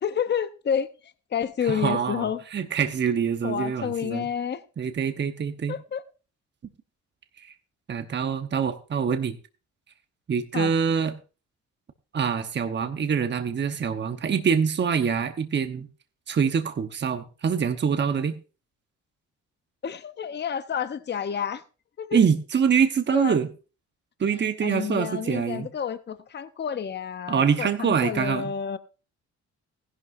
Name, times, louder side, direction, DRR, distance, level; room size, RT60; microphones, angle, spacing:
voice 1, 0.0-2.4 3.4-4.6 5.7-6.0 10.5-10.7 19.8-21.6 22.0-22.2 23.1-23.4 24.6-28.8, left 8 dB, 35° left, 0.8 m, -29 dB
voice 2, 1.6-4.3 4.8-5.8 7.4-7.5 7.9-9.4 10.3-11.1 12.1-15.9 16.3-18.3 22.1-23.5 24.2-25.7 27.3-28.5, right 6 dB, 35° right, 1.0 m, -25 dB
15.5 x 11.0 x 2.6 m
cardioid pair, 90°, 30 cm